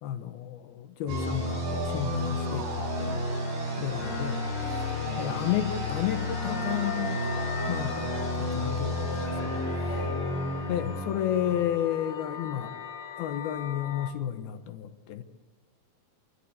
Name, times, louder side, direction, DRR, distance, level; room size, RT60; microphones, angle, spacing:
voice 1, 0.0-3.3 3.8-4.4 5.2-7.4 7.7-9.9 10.7-12.7 13.2-15.2, left 11 dB, 85° left, 7 dB, 3.1 m, -32 dB
sound 1, 1.1-11.7, left 1 dB, 60° right, 9.1 m, -31 dB
voice 2, 3.8-5.4 9.9-10.2, equal, 5° right, -5 dB, 5.4 m, -45 dB
sound 2, 4.0-14.1, left 7 dB, 55° left, 1.9 m, -40 dB
28.0 x 12.5 x 8.3 m, 1.4 s
omnidirectional pair, 4.3 m